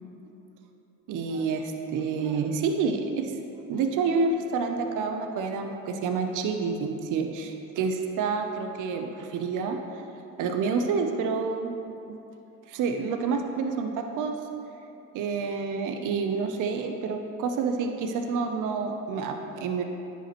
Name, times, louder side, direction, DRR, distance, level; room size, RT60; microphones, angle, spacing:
voice 1, 1.1-3.4 3.7-10.0 10.4-11.8 12.1-12.2 12.7-14.4 15.1-19.8, right 5 dB, 60° right, 5 dB, 0.7 m, -28 dB
10.0 x 5.5 x 3.0 m, 2.7 s
hypercardioid pair, 65°, 35 cm